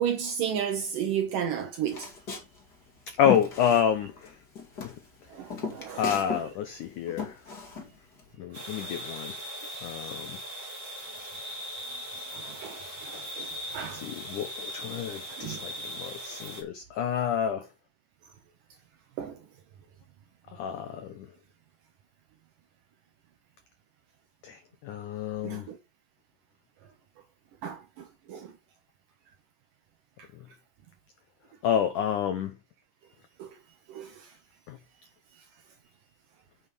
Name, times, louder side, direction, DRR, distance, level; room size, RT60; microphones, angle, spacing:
voice 1, 0.0-2.1 5.3-6.4 8.8-8.9 12.3-12.8 13.0-13.5 13.7-14.0 15.4-15.6 19.2-19.3 25.4-25.8 27.6-27.8 28.3-28.5 33.4-33.5 33.9-34.1, right 8 dB, 70° right, 2.1 m, -32 dB
Walk footsteps, 1.9-4.3 4.6-6.5 6.7-8.3, left 6 dB, 30° left, 2.0 m, -35 dB
voice 2, 3.1-4.4 4.8-5.0 5.9-7.4 8.4-9.4 9.8-10.4 13.1-13.3 13.9-17.7 20.5-21.3 24.4-25.7 31.6-32.5 34.7-34.8, left 9 dB, 85° left, 1.7 m, -29 dB
sound 1, 8.5-16.6, equal, 20° right, 3.0 m, -39 dB
9.5 x 6.2 x 5.4 m
omnidirectional pair, 5.0 m